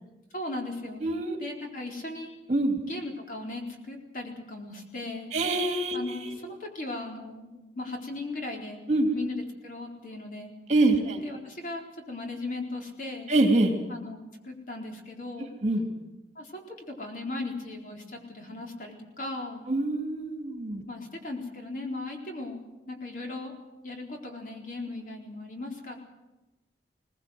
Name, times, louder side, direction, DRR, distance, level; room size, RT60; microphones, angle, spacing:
voice 1, 0.0-1.0 1.4-2.3 2.8-5.4 5.9-7.5 7.7-8.8 9.1-10.5 11.2-13.3 13.9-15.5 16.4-19.6 20.9-22.6 22.9-23.5 23.8-26.0, left 2 dB, 50° left, 1 dB, 4.1 m, -37 dB
voice 2, 1.0-1.4 2.5-2.8 5.3-6.0 6.2-6.4 8.9-9.1 10.7-11.2 13.3-13.7 15.6-15.8 19.7-20.8, right 2 dB, 40° right, 4 dB, 2.9 m, -25 dB
22.0 x 19.0 x 7.9 m, 1.0 s
head